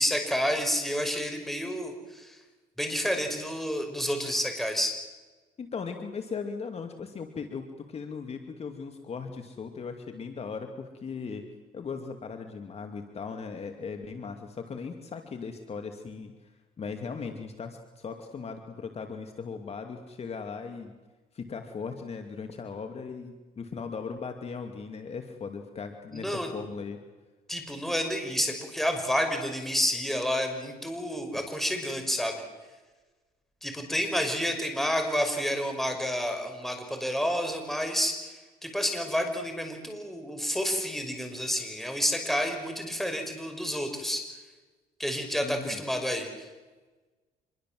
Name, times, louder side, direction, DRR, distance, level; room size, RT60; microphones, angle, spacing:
voice 1, 0.0-2.4 2.8-4.9 26.1-26.5 27.5-32.3 33.6-44.4 45.0-46.5, equal, ahead, 4 dB, 5.9 m, -29 dB
voice 2, 5.6-11.5 11.7-16.5 16.8-20.9 21.3-27.0 45.4-45.8, left 5 dB, 40° left, 5 dB, 2.5 m, -38 dB
26.5 x 22.5 x 7.8 m, 1.3 s
cardioid pair, 110°, 17 cm